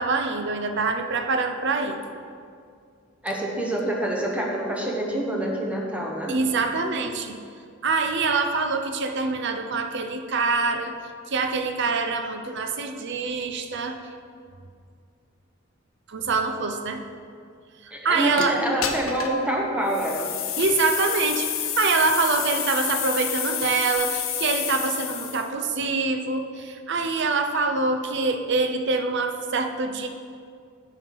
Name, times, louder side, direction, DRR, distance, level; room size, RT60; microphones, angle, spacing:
voice 1, 0.0-2.0 6.3-7.4 7.8-10.9 11.3-14.0 16.1-17.0 17.8-18.6 20.6-21.5 21.8-30.1, right 4 dB, 60° right, 6 dB, 0.6 m, -25 dB
voice 2, 3.2-6.4 17.9-20.3, right 1 dB, 5° right, -2 dB, 0.9 m, -26 dB
sound 1, 18.4-18.5 18.8-19.4 19.9-25.5, left 9 dB, 85° left, 0.8 m, -29 dB
9.0 x 5.8 x 4.6 m, 2.3 s
head